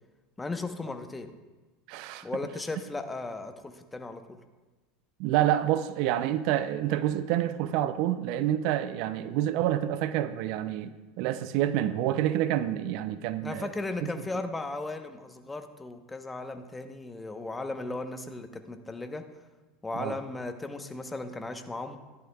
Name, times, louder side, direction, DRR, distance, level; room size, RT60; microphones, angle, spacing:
voice 1, 0.4-1.3 2.2-4.4 13.4-19.3 19.8-22.0, left 2 dB, 15° left, 7 dB, 0.8 m, -36 dB
voice 2, 1.9-2.3 5.2-13.7 19.9-20.2, right 12 dB, 60° right, 13 dB, 0.4 m, -28 dB
14.0 x 11.0 x 2.3 m, 1.2 s
hypercardioid pair, 90°, 0 cm